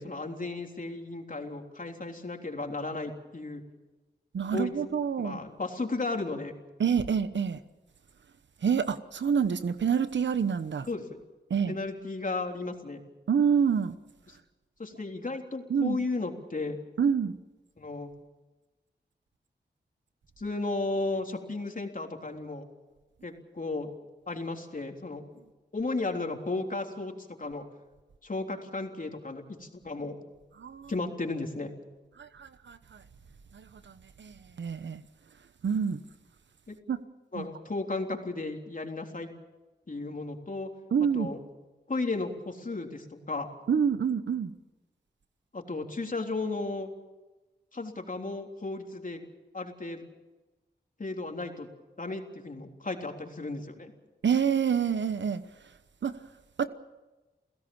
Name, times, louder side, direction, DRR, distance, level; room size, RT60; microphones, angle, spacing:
voice 1, 0.0-3.6 4.5-4.7 5.2-6.5 10.9-11.2 11.7-13.0 14.3-14.4 14.8-16.8 17.8-18.1 20.4-22.6 23.2-23.9 24.3-25.2 25.7-27.1 27.4-27.6 28.2-30.2 30.9-31.7 36.7-36.8 37.3-39.3 39.9-40.7 41.1-41.4 41.9-43.5 45.5-46.9 47.7-49.3 49.5-50.0 51.0-51.7 52.0-53.9, left 3 dB, 45° left, 3 dB, 3.6 m, -34 dB
voice 2, 4.3-5.4 6.8-7.6 8.6-10.9 11.5-11.8 13.3-14.0 15.7-16.0 17.0-17.3 30.6-30.9 32.2-33.0 33.5-35.0 35.6-36.0 36.9-37.0 37.3-37.5 40.9-41.3 43.7-44.5 54.2-55.4 56.0-56.1 56.6-56.7, right 7 dB, 80° right, 12 dB, 1.1 m, -27 dB
29.5 x 16.5 x 7.3 m, 1.1 s
cardioid pair, 40°, 18 cm